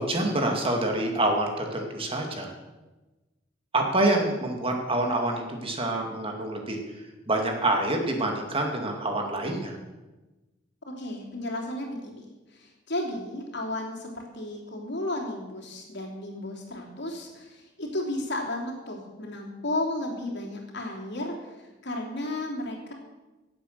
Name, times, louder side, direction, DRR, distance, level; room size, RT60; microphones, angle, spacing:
voice 1, 0.0-2.5 3.7-9.8, right 1 dB, 30° right, 2 dB, 2.2 m, -27 dB
voice 2, 10.9-12.3 12.5-14.1 14.3-21.6 21.8-22.9, left 1 dB, 65° left, 0 dB, 3.2 m, -33 dB
17.0 x 8.1 x 6.8 m, 1.1 s
head